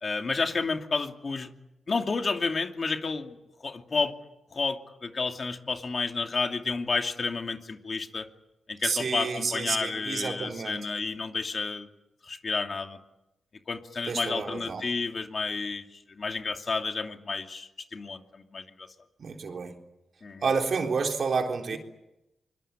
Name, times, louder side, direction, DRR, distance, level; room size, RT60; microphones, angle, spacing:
voice 1, 0.0-1.5 1.9-4.1 4.5-8.3 8.7-11.9 12.2-13.0 13.7-18.9 20.2-20.4, left 4 dB, 50° left, 5 dB, 2.7 m, -31 dB
voice 2, 8.8-10.9 14.1-14.9 19.2-19.7 20.4-21.8, right 5 dB, 65° right, 3 dB, 3.8 m, -30 dB
24.5 x 22.5 x 8.9 m, 0.93 s
cardioid pair, 60°, 0 cm